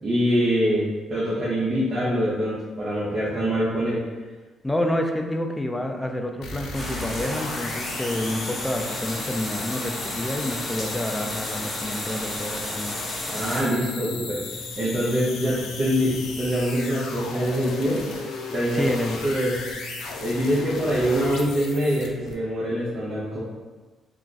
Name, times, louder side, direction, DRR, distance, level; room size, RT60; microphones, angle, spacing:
voice 1, 0.0-4.0 13.3-14.4 14.8-18.1 18.5-18.9 19.2-19.5 20.2-23.4, equal, 35° right, -9 dB, 0.8 m, -24 dB
voice 2, 4.6-12.9 18.7-19.3, left 1 dB, 10° left, 3 dB, 0.4 m, -28 dB
sound 1, 6.4-22.3, left 3 dB, 80° left, 0.4 m, -35 dB
sound 2, 6.7-13.6, left 1 dB, 30° left, 1.1 m, -33 dB
2.4 x 2.2 x 3.9 m, 1.3 s
cardioid pair, 90°, 0 cm